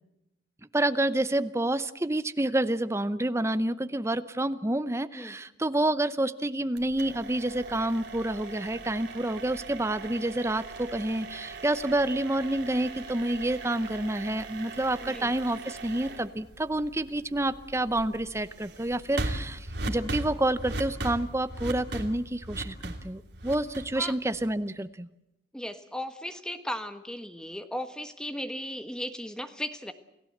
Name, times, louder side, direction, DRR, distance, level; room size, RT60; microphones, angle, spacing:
voice 1, 0.7-25.1, right 1 dB, 15° right, 13 dB, 0.8 m, -28 dB
sound 1, 6.8-24.7, right 2 dB, 65° right, 3.0 m, -39 dB
voice 2, 25.5-29.9, left 1 dB, 5° left, 8 dB, 1.4 m, -36 dB
29.0 x 16.0 x 8.0 m, 0.89 s
head